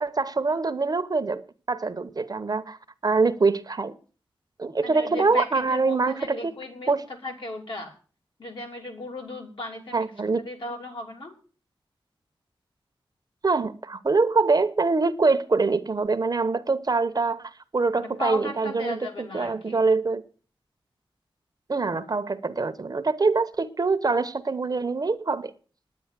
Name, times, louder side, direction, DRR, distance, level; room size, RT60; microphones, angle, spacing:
voice 1, 0.0-1.4 1.7-2.8 3.0-3.9 4.6-6.5 6.9-7.0 9.9-10.4 13.4-20.2 21.7-25.5, right 4 dB, 45° right, 0.9 m, -24 dB
voice 2, 4.8-7.9 8.4-10.1 10.4-11.4 17.9-19.9, left 1 dB, 60° left, 3.0 m, -36 dB
9.7 x 9.6 x 7.4 m
wide cardioid pair, 110°, 9 cm